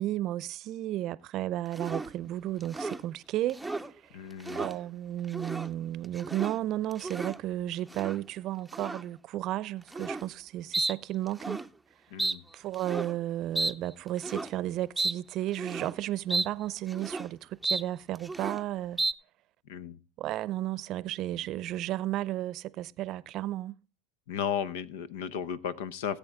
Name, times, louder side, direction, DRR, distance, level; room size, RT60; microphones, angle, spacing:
voice 1, 0.0-3.6 4.5-11.6 12.5-19.0 20.2-23.8, right 14 dB, 50° right, 0.6 m, -33 dB
sound 1, 1.7-2.1 2.6-3.0 3.5-3.9 4.3-4.7 5.2-5.7 6.0-6.6 6.9-7.4 7.9-8.2 8.7-9.0 9.9-10.3 10.7-11.0 11.3-11.7 12.2-12.4 12.7-13.2 13.6-13.7 14.2-14.5 15.0-15.2 15.5-16.0 16.3-16.5 16.8-17.3 17.6-17.8 18.2-18.6 19.0-19.1, right 2 dB, 5° right, 0.6 m, -33 dB
voice 2, 4.1-4.6 12.1-12.4 19.7-20.0 24.3-26.2, left 8 dB, 85° left, 0.9 m, -34 dB
18.0 x 8.5 x 3.6 m
supercardioid pair, 110°, 0 cm